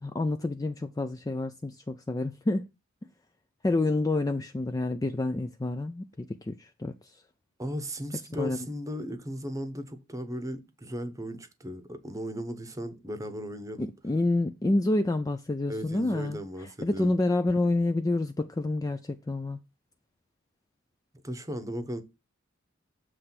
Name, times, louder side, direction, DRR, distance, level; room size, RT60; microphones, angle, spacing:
voice 1, 0.0-2.6 3.6-7.2 8.4-8.6 13.8-16.4 16.8-19.6, left 2 dB, 15° left, 0.3 m, -28 dB
voice 2, 7.6-13.9 15.7-17.1 21.2-22.0, equal, 15° right, 0.9 m, -36 dB
7.6 x 3.2 x 5.8 m
head